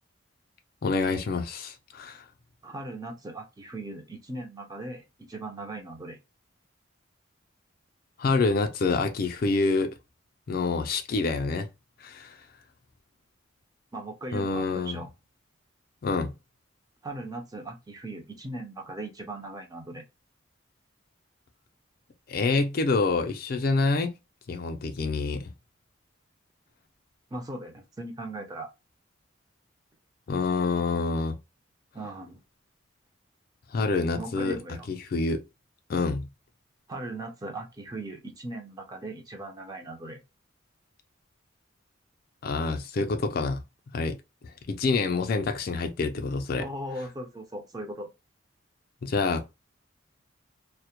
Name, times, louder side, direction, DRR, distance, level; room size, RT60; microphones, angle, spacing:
voice 1, 0.8-2.2 8.2-9.9 10.5-11.7 12.0-12.4 14.3-15.0 16.0-16.3 22.3-24.1 24.5-25.5 30.3-31.4 33.7-34.6 34.9-35.4 35.9-36.3 42.4-43.6 43.9-44.2 44.7-46.6 49.0-49.5, left 3 dB, 45° left, 0.3 m, -27 dB
voice 2, 2.6-6.2 13.9-15.1 17.0-20.0 27.3-28.7 31.9-32.4 34.2-34.9 36.9-40.2 46.6-48.1, right 2 dB, 20° right, 0.4 m, -38 dB
2.1 x 2.1 x 2.8 m
head